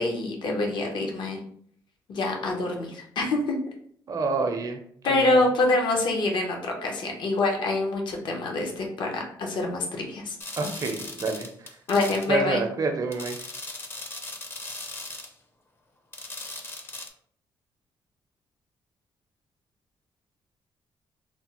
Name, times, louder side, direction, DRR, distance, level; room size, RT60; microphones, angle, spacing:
voice 1, 0.0-1.4 2.1-3.6 5.0-10.4 11.9-12.6, left 2 dB, 65° left, 1 dB, 0.7 m, -26 dB
voice 2, 4.1-4.8 5.1-5.4 10.6-11.5 12.3-13.5, right 4 dB, 45° right, 5 dB, 0.5 m, -28 dB
sound 1, 10.4-12.3 13.1-15.3 16.1-17.1, left 2 dB, 25° left, 0.5 m, -38 dB
3.2 x 2.0 x 2.9 m, 0.63 s
cardioid pair, 85°, 8 cm